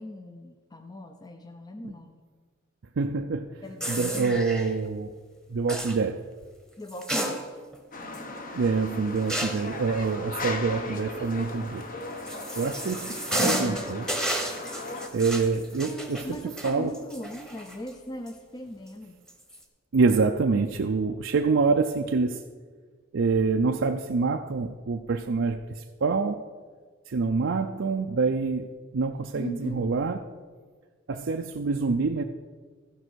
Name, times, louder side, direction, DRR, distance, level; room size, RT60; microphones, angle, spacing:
voice 1, 0.0-2.2 3.6-4.4 6.8-7.4 12.8-13.1 15.8-19.2 29.3-29.9, equal, 20° left, 6 dB, 0.5 m, -39 dB
voice 2, 3.0-5.1 5.5-6.2 8.5-11.8 12.6-14.1 15.1-16.2 16.6-16.9 19.9-22.4 23.1-26.4 27.1-28.7 28.9-30.2 31.1-32.2, right 4 dB, 65° right, 4 dB, 0.5 m, -26 dB
sound 1, 3.8-4.7 5.7-6.0 6.9-7.8 8.1-8.2 9.3-9.7 11.8-17.9 18.3-18.4 19.3-19.6, right 1 dB, 5° left, 1.1 m, -32 dB
sound 2, 7.9-15.1, left 2 dB, 45° left, 1.0 m, -38 dB
15.0 x 5.4 x 6.2 m, 1.5 s
head